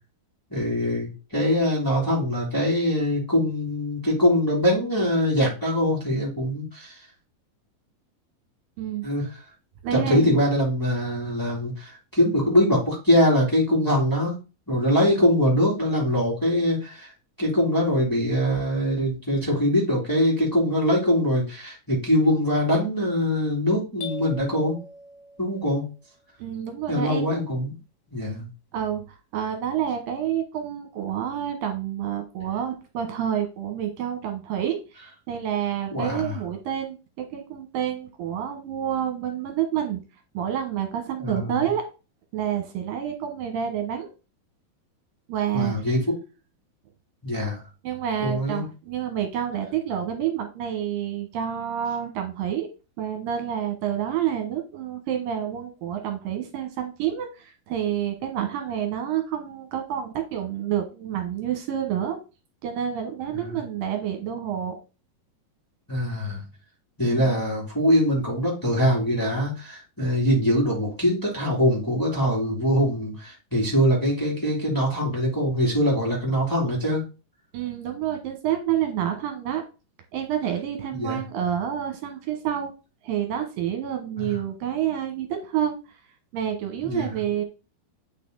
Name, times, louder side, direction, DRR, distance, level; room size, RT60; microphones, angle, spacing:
voice 1, 0.5-6.9 9.0-9.2 9.9-14.4 14.7-17.1 17.4-24.8 25.4-25.8 26.9-27.8 28.1-28.5 35.9-36.4 41.2-41.6 45.5-46.2 47.2-47.6 48.2-48.7 63.3-63.6 65.9-66.4 67.0-77.0 80.9-81.2 84.2-84.4 86.8-87.2, equal, 5° left, -4 dB, 2.3 m, -23 dB
voice 2, 9.8-10.4 26.4-27.3 28.7-40.0 40.3-41.8 42.3-44.1 45.3-45.8 47.8-52.7 53.0-62.2 62.6-64.8 67.0-67.3 77.5-79.6 80.1-82.7 83.0-85.8 86.3-87.4, right 10 dB, 75° right, 5 dB, 2.8 m, -28 dB
sound 1, 24.0-25.9, left 2 dB, 85° left, 3.4 m, -40 dB
8.8 x 4.2 x 3.9 m, 0.30 s
omnidirectional pair, 4.3 m